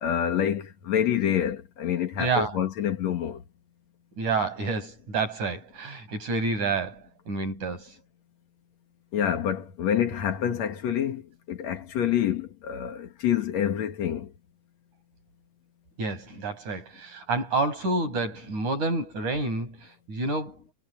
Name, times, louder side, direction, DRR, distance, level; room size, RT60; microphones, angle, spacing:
voice 1, 0.0-3.4 9.1-11.2 11.5-14.3, left 9 dB, 65° left, 2.8 m, -27 dB
voice 2, 2.2-2.6 4.2-7.9 16.0-20.6, right 3 dB, 85° right, 9.4 m, -29 dB
omnidirectional pair, 3.3 m